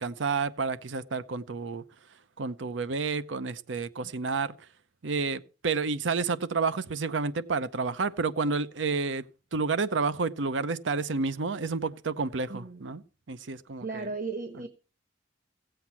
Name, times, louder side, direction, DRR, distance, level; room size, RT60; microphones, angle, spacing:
voice 1, 0.0-1.8 2.4-4.7 5.0-9.3 9.5-13.0 13.3-14.1, right 4 dB, 85° right, 0.7 m, -30 dB
voice 2, 12.5-12.9 13.8-14.7, right 3 dB, 50° right, 1.2 m, -36 dB
16.5 x 7.9 x 5.8 m
head